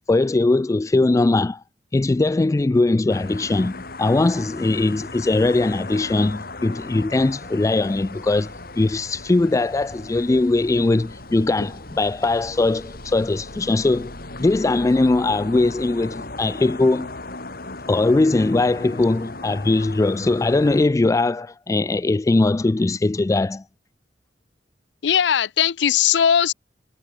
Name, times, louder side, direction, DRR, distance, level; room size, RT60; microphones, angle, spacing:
voice 1, 0.1-1.6 1.9-14.1 14.4-17.1 17.9-23.6, left 2 dB, 20° left, 0.3 m, -20 dB
sound 1, 3.1-20.8, left 2 dB, 55° left, 7.1 m, -37 dB
voice 2, 25.0-26.5, left 8 dB, 75° left, 0.5 m, -18 dB
head